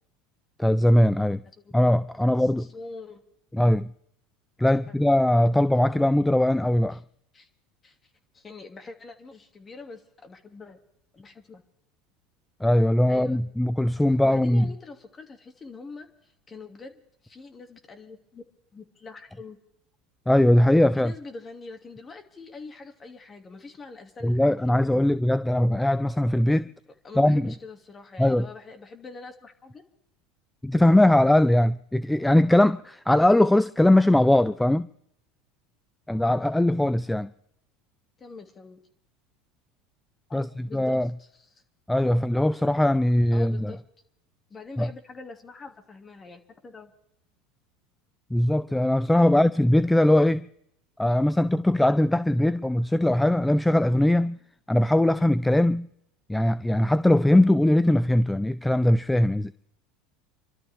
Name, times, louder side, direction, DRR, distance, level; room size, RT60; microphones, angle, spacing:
voice 1, 0.6-1.4 1.7-2.7 3.5-3.9 4.6-7.0 12.6-14.6 20.3-21.1 24.2-26.7 27.2-27.5 28.2-28.5 30.6-34.9 36.1-37.3 40.3-40.5 40.7-41.1 41.9-43.7 44.8-44.9 48.3-50.5 51.0-54.4 54.7-55.9 56.3-59.5, left 1 dB, 5° left, 0.5 m, -20 dB
voice 2, 2.2-3.2 4.7-4.8 6.9-7.0 7.3-7.5 7.8-10.8 11.1-11.6 13.1-13.4 14.2-18.4 18.7-19.6 20.9-25.2 27.0-29.8 38.2-38.8 40.3-41.6 43.3-43.8 44.5-46.9 49.2-49.4, left 3 dB, 25° left, 2.5 m, -44 dB
28.5 x 12.5 x 3.6 m
hypercardioid pair, 85°, 0 cm